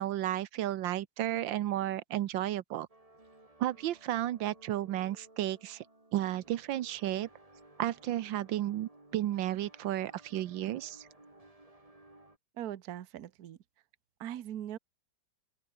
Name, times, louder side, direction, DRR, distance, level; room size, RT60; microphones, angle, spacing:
voice 1, 0.0-2.9 3.6-5.8 6.1-7.3 7.8-11.1, right 13 dB, 85° right, 1.5 m, -33 dB
sound 1, 2.9-12.4, right 2 dB, 20° right, 3.2 m, -58 dB
voice 2, 12.6-13.6 14.2-14.8, right 11 dB, 60° right, 1.3 m, -40 dB
open air
omnidirectional pair, 2.0 m